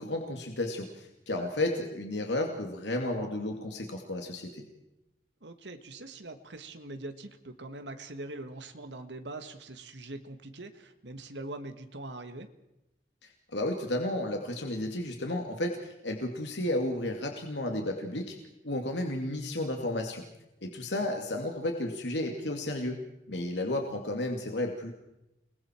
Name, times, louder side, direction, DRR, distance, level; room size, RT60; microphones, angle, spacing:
voice 1, 0.0-4.6 13.5-18.4 18.6-20.2 20.6-23.0 23.3-24.9, left 1 dB, 90° left, 2 dB, 2.5 m, -32 dB
voice 2, 5.4-12.5 20.9-21.1, right 2 dB, 85° right, 7 dB, 1.7 m, -43 dB
29.5 x 21.0 x 4.6 m, 0.89 s
head